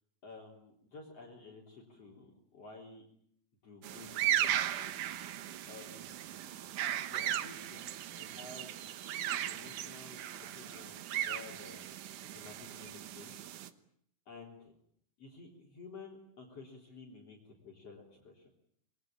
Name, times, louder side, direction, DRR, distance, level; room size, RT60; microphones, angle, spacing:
voice 1, 0.2-3.0 3.6-4.9 5.7-6.2 7.0-8.7 9.3-11.9 12.3-13.3 14.3-14.7 15.2-18.5, left 3 dB, 45° left, -1 dB, 4.5 m, -52 dB
sound 1, 3.8-13.7, right 11 dB, 65° right, 2.5 m, -37 dB
26.0 x 22.0 x 8.8 m, 0.68 s
omnidirectional pair, 4.1 m